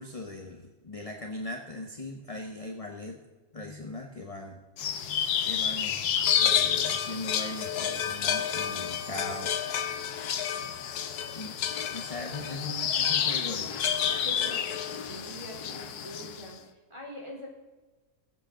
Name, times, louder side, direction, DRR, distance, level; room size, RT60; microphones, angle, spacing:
voice 1, 0.0-3.2 3.5-4.6 5.4-6.1 6.3-9.5 11.3-13.9, left 2 dB, 25° left, 2 dB, 1.1 m, -39 dB
sound 1, 4.8-16.5, left 8 dB, 85° left, 1.4 m, -29 dB
voice 2, 14.2-17.5, equal, 20° right, -2 dB, 3.5 m, -44 dB
21.0 x 8.2 x 3.8 m, 1.2 s
omnidirectional pair, 1.6 m